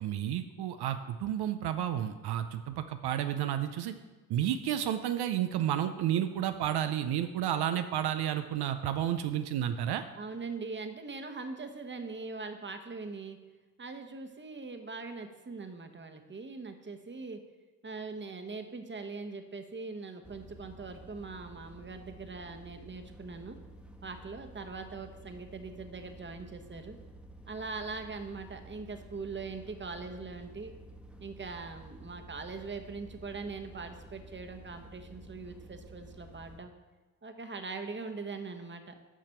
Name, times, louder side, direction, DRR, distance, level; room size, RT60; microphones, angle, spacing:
voice 1, 0.0-3.9 4.3-10.0, right 10 dB, 60° right, 9 dB, 0.6 m, -31 dB
voice 2, 10.1-13.4 13.8-17.4 17.8-23.6 24.0-27.0 27.5-30.7 31.2-36.7 37.2-39.0, right 4 dB, 25° right, 6 dB, 1.2 m, -41 dB
sound 1, 20.2-36.6, right 1 dB, ahead, 1.3 m, -51 dB
7.5 x 5.7 x 6.6 m, 1.2 s
hypercardioid pair, 45°, 45 cm